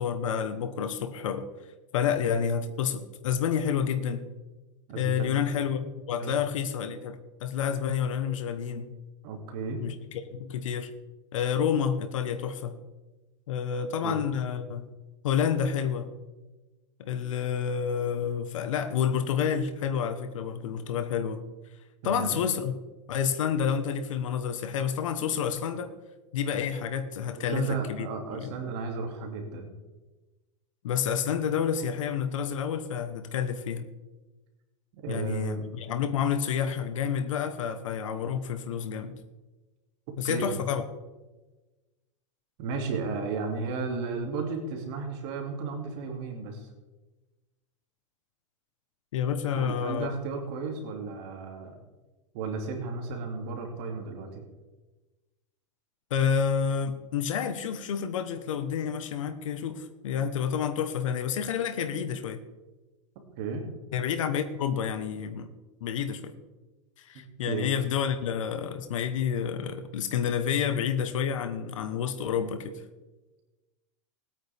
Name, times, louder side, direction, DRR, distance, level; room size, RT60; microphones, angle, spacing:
voice 1, 0.0-1.5 1.9-4.3 4.9-8.9 9.8-10.9 11.3-12.8 13.5-14.9 15.2-16.1 17.0-21.4 22.0-22.8 23.1-25.9 26.3-28.5 30.8-33.9 35.1-39.2 40.2-40.8 49.1-50.1 56.1-62.4 63.9-65.5 65.8-66.3 67.0-72.8, left 7 dB, 85° left, 8 dB, 1.2 m, -29 dB
voice 2, 4.9-5.4 6.1-6.3 9.2-9.8 14.0-14.2 22.0-22.4 27.4-29.7 35.0-35.7 40.2-40.6 42.6-46.7 49.5-51.8 52.3-54.5 63.4-63.7 67.5-67.7, right 4 dB, 55° right, 2 dB, 2.5 m, -34 dB
20.5 x 9.0 x 3.5 m, 1.2 s
supercardioid pair, 130°, 16 cm